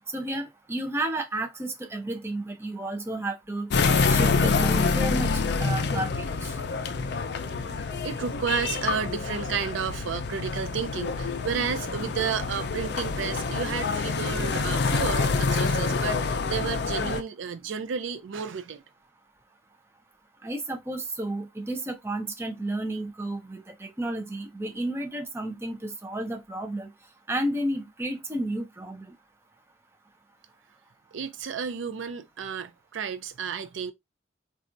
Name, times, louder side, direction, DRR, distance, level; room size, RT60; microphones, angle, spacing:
voice 1, 0.1-3.7 4.1-5.3 5.6-6.5 20.4-26.9 27.3-29.1, right 1 dB, 15° right, 0.5 m, -32 dB
sound 1, 3.7-17.2, left 4 dB, 60° left, 0.4 m, -27 dB
voice 2, 7.4-18.8 31.1-33.9, right 6 dB, 80° right, 0.4 m, -32 dB
4.0 x 2.3 x 2.5 m
head